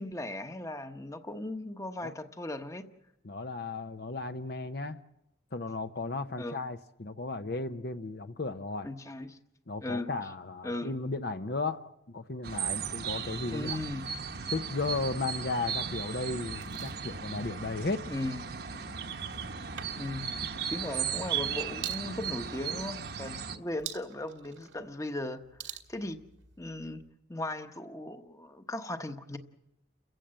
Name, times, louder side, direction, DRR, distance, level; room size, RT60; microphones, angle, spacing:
voice 1, 0.0-2.8 6.4-6.6 8.8-9.4 9.8-10.1 10.6-10.9 13.5-14.0 18.1-18.4 20.0-20.3 20.7-26.2 26.6-27.0 27.3-29.4, left 1 dB, 15° left, 8 dB, 1.0 m, -37 dB
voice 2, 3.2-5.0 5.5-8.9 9.7-13.8 14.5-18.0, left 3 dB, 55° left, 9 dB, 0.8 m, -35 dB
sound 1, 12.4-23.6, right 7 dB, 55° right, 1.1 m, -36 dB
sound 2, 16.5-27.1, right 10 dB, 85° right, 2.0 m, -49 dB
29.5 x 15.5 x 7.7 m, 0.89 s
head